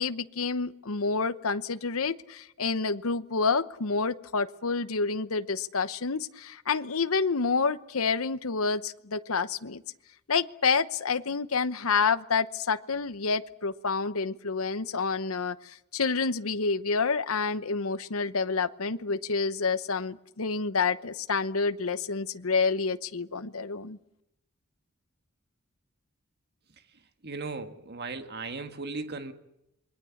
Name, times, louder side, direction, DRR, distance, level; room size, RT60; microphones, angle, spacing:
voice 1, 0.0-9.8 10.3-24.0, left 4 dB, 70° left, 13 dB, 0.9 m, -28 dB
voice 2, 27.2-29.3, right 3 dB, 50° right, 7 dB, 1.7 m, -37 dB
27.5 x 22.5 x 7.2 m, 0.84 s
head